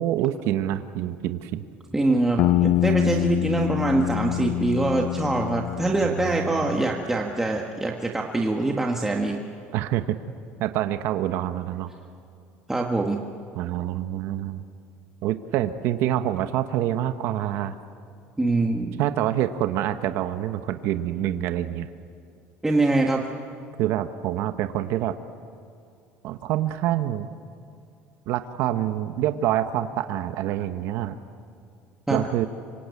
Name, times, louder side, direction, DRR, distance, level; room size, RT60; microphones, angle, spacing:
voice 1, 0.0-1.6 6.0-6.3 9.7-10.2 10.6-11.9 13.5-14.6 15.2-17.7 19.0-21.9 23.8-25.2 26.2-27.3 28.3-31.1 32.1-32.5, right 12 dB, 65° right, 9 dB, 1.2 m, -26 dB
voice 2, 1.9-9.4 12.7-13.2 18.4-19.0 22.6-23.2 32.1-32.2, right 2 dB, 10° right, 0 dB, 1.8 m, -24 dB
sound 1, 2.4-7.1, left 14 dB, 55° left, 0.7 m, -25 dB
26.5 x 25.0 x 8.5 m, 2.5 s
cardioid pair, 130°, 5 cm